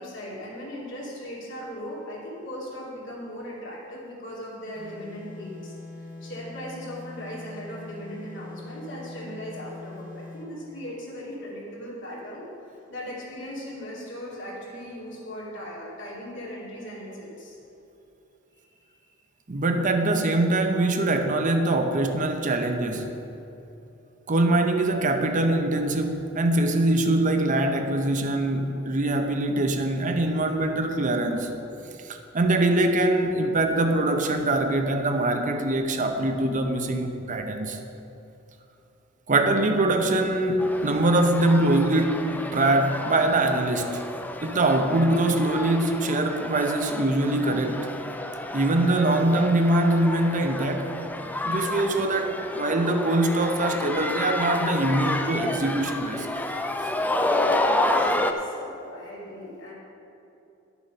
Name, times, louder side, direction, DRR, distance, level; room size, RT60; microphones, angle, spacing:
voice 1, 0.0-5.7 6.2-17.6 18.8-19.1 57.6-59.7, equal, 65° left, -5 dB, 2.7 m, -38 dB
sound 1, 4.7-10.6, left 2 dB, 45° left, 1.4 m, -42 dB
voice 2, 19.5-23.2 24.3-31.5 32.0-37.8 39.3-42.3 42.5-44.0 44.4-47.9 48.5-50.9 51.5-56.3, right 2 dB, 40° right, 6 dB, 0.8 m, -23 dB
sound 2, 40.6-58.3, left 2 dB, 10° left, 0.4 m, -30 dB
11.0 x 7.1 x 5.5 m, 2.8 s
head